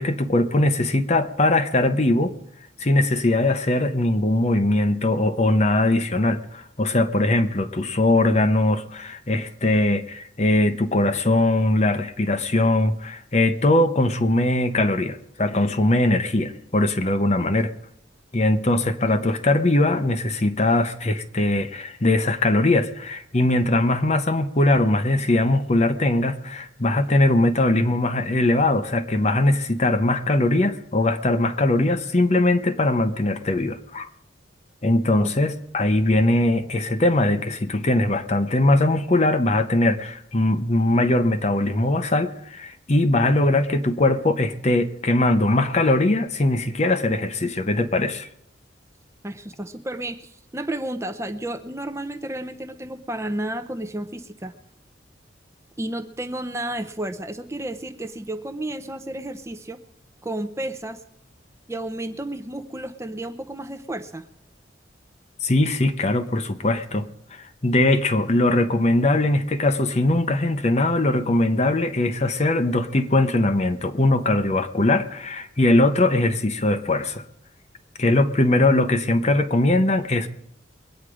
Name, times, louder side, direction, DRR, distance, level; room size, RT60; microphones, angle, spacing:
voice 1, 0.0-2.3 2.8-17.7 18.3-34.1 34.8-48.3 65.4-77.2 78.0-80.3, left 2 dB, 35° left, 0.8 m, -21 dB
voice 2, 49.2-54.5 55.8-59.8 60.2-61.0 61.7-64.3, right 1 dB, 15° right, 0.6 m, -32 dB
22.0 x 9.0 x 4.9 m
head